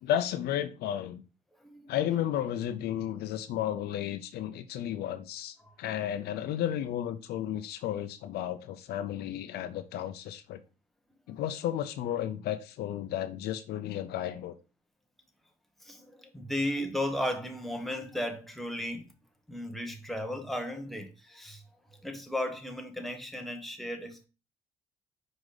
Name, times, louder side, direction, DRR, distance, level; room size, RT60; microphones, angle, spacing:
voice 1, 0.0-1.2 1.9-10.6 11.3-14.5, left 11 dB, 70° left, 0.7 m, -33 dB
voice 2, 15.8-19.1 19.5-21.6 22.0-24.3, left 1 dB, ahead, 1.3 m, -35 dB
5.0 x 4.9 x 4.0 m
cardioid pair, 110°, 17 cm